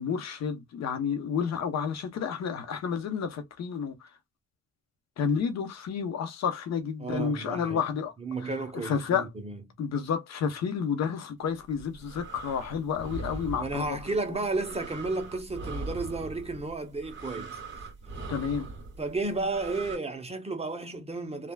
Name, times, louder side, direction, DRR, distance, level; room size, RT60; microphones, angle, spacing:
voice 1, 0.0-3.9 5.2-8.1 8.8-9.3 9.8-13.9 18.3-18.7, left 7 dB, 60° left, 0.8 m, -30 dB
voice 2, 7.0-7.9 8.2-9.6 13.6-17.6 19.0-21.5, right 3 dB, 20° right, 0.7 m, -33 dB
sound 1, 11.6-20.0, right 3 dB, 40° right, 1.7 m, -41 dB
3.3 x 2.3 x 2.3 m
cardioid pair, 90°, 30 cm